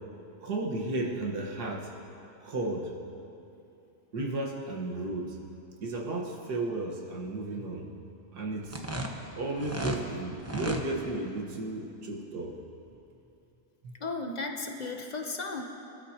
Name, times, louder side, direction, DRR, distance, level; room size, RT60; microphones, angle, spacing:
voice 1, 0.4-1.9 2.4-2.9 4.1-5.4 5.8-7.9 8.3-8.8 9.4-12.6 13.8-13.9, right 2 dB, 80° right, -1 dB, 2.1 m, -34 dB
sound 1, 8.6-10.0 10.4-10.8, right 1 dB, 15° right, 0.7 m, -34 dB
voice 2, 14.0-15.6, left 3 dB, 35° left, 3 dB, 0.9 m, -35 dB
25.0 x 12.5 x 2.9 m, 2.7 s
omnidirectional pair, 1.7 m